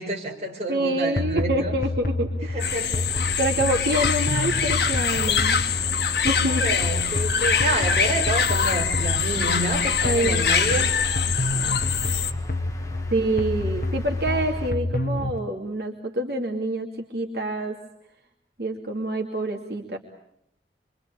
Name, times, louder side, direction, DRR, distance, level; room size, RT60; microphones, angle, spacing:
voice 1, 0.0-1.7 2.5-3.1 6.5-10.9, right 2 dB, 40° right, 0 dB, 5.6 m, -29 dB
voice 2, 0.7-2.8 3.4-5.6 6.2-6.6 10.0-10.4 13.1-17.8 18.6-20.0, right 1 dB, 70° right, 1 dB, 2.7 m, -26 dB
sound 1, 1.2-15.4, left 2 dB, 55° left, 1.4 m, -29 dB
sound 2, 2.6-12.3, left 7 dB, 75° left, 1.8 m, -24 dB
sound 3, 3.2-14.7, left 2 dB, 20° left, 1.8 m, -39 dB
27.5 x 24.5 x 8.3 m, 0.75 s
head